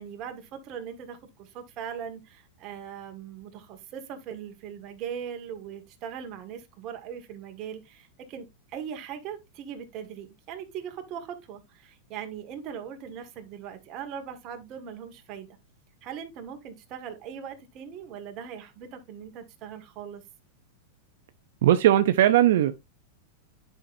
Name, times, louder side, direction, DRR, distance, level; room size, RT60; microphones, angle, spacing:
voice 1, 0.0-15.5 16.0-20.2, right 8 dB, 35° right, 1.7 m, -40 dB
voice 2, 21.6-22.7, right 12 dB, 70° right, 0.6 m, -19 dB
9.7 x 5.7 x 2.6 m
supercardioid pair, 150°, 0 cm